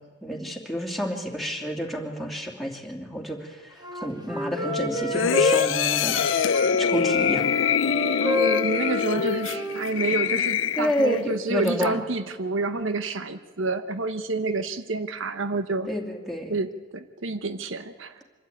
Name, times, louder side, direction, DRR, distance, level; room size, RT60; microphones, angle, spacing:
voice 1, 0.2-7.5 10.8-12.0 15.9-16.6, equal, ahead, -1 dB, 2.6 m, -30 dB
Wind instrument woodwind instrument, 3.8-6.7 7.0-10.4, left 1 dB, 20° right, 1.7 m, -30 dB
Wind instrument woodwind instrument 2, 4.6-9.6, left 7 dB, 25° left, 0.5 m, -35 dB
sound 1, 5.1-11.2 11.7-11.8, left 7 dB, 80° left, 0.5 m, -24 dB
voice 2, 8.2-15.9 16.5-18.2, right 2 dB, 85° right, 10 dB, 1.0 m, -28 dB
25.5 x 13.0 x 9.2 m, 1.5 s
head